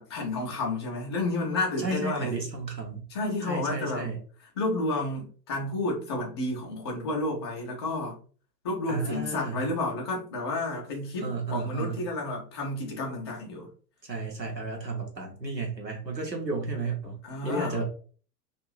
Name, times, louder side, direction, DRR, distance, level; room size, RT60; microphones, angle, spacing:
voice 1, 0.0-2.4 3.1-4.1 4.6-8.2 8.6-13.7 17.2-17.8, left 2 dB, 20° left, -1 dB, 0.3 m, -31 dB
voice 2, 1.8-3.0 3.5-4.2 8.9-9.6 11.2-12.0 14.0-17.2 17.4-17.8, right 3 dB, 90° right, 1 dB, 0.9 m, -32 dB
2.5 x 2.3 x 3.0 m, 0.42 s
figure-of-eight pair, 95°, 49 cm